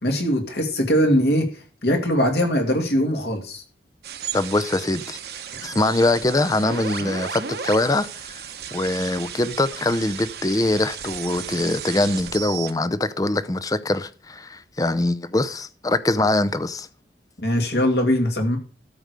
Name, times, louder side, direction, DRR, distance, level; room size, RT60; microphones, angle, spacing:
voice 1, 0.0-1.5 1.8-3.6 17.4-18.6, equal, 70° left, 2.2 m, -21 dB
sound 1, 4.0-12.7, right 7 dB, 65° right, 1.1 m, -34 dB
voice 2, 4.3-5.2 5.6-8.3 8.7-16.9, left 2 dB, 20° left, 0.5 m, -23 dB
13.0 x 4.8 x 6.7 m
head